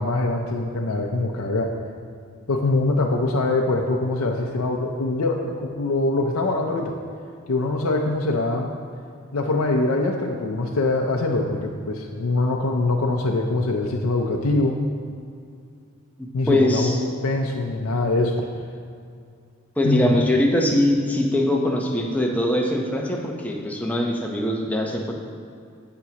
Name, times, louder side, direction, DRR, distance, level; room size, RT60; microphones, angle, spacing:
voice 1, 0.0-1.7 2.5-7.0 7.5-8.7 9.3-14.8 16.3-18.4 19.8-20.2, left 2 dB, 75° left, 1 dB, 0.6 m, -23 dB
voice 2, 16.2-17.0 19.8-25.1, left 1 dB, 5° left, 0 dB, 0.7 m, -22 dB
14.0 x 6.0 x 2.9 m, 2.3 s
head